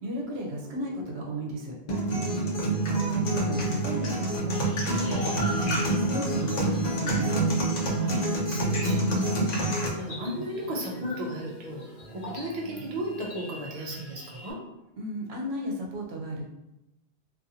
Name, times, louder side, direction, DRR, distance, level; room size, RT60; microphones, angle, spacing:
voice 1, 0.0-1.7 2.9-4.6 4.9-7.4 15.0-16.4, right 1 dB, 70° right, -1 dB, 0.9 m, -34 dB
sound 1, 0.5-13.3, right 2 dB, 30° right, 1.1 m, -47 dB
sound 2, 1.9-9.9, right 2 dB, 50° left, 0.5 m, -27 dB
voice 2, 2.3-2.7 7.9-14.6, equal, 50° right, -3 dB, 0.5 m, -35 dB
sound 3, 4.5-14.5, left 1 dB, 70° left, 0.9 m, -43 dB
2.6 x 2.4 x 2.7 m, 0.91 s
omnidirectional pair, 1.1 m